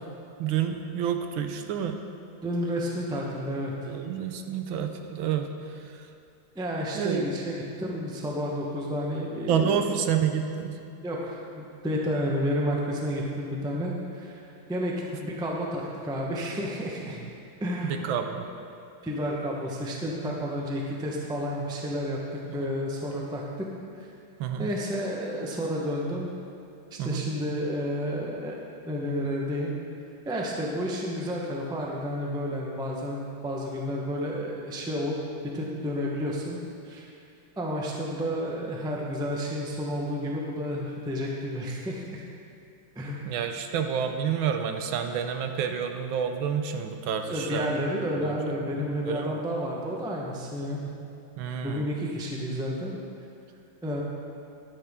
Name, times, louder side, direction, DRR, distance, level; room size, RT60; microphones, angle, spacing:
voice 1, 0.4-2.1 3.8-6.1 6.9-7.3 9.5-10.8 17.2-17.3 18.0-18.5 20.2-20.4 22.5-22.6 24.4-24.7 27.0-27.3 43.2-47.8 48.2-48.5 49.1-49.4 51.4-51.8, right 8 dB, 80° right, 6 dB, 1.4 m, -29 dB
voice 2, 2.4-3.7 6.5-9.8 11.0-14.4 14.7-17.2 17.6-18.0 19.0-23.7 24.0-24.1 24.6-26.3 26.9-28.5 28.8-29.7 30.3-35.2 35.4-36.6 36.8-37.1 37.6-42.2 42.9-43.2 47.3-50.9 51.6-53.0 53.8-54.0, equal, 5° right, -2 dB, 0.4 m, -31 dB
11.0 x 9.7 x 3.6 m, 2.6 s
omnidirectional pair, 2.2 m